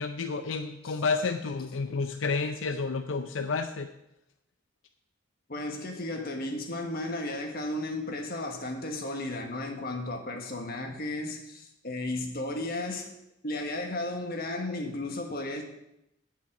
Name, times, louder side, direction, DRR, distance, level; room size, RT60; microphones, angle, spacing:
voice 1, 0.0-3.9, left 4 dB, 85° left, 7 dB, 0.6 m, -30 dB
voice 2, 5.5-13.1 13.4-15.6, left 2 dB, 50° left, 3 dB, 1.6 m, -34 dB
9.5 x 5.6 x 7.8 m, 0.84 s
head